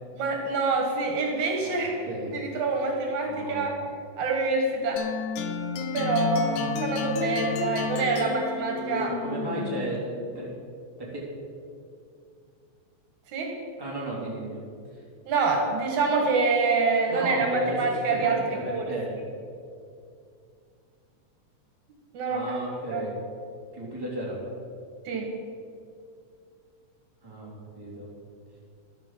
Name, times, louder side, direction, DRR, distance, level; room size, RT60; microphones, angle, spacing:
voice 1, 0.2-2.0 2.3-3.7 4.2-5.0 5.9-9.1 13.3-13.5 15.3-18.4 18.7-18.9 22.1-22.4 22.9-23.0 25.1-25.3, right 4 dB, 75° right, 1 dB, 2.8 m, -26 dB
voice 2, 1.6-2.3 2.7-3.0 3.2-3.7 9.0-10.5 11.0-11.2 13.8-14.6 14.9-15.0 17.1-19.2 22.3-23.1 23.7-24.4 27.2-28.1, right 1 dB, 10° right, -6 dB, 2.8 m, -34 dB
sound 1, 5.0-10.1, left 6 dB, 80° left, 2.0 m, -31 dB
12.0 x 6.8 x 7.6 m, 2.4 s
omnidirectional pair, 3.4 m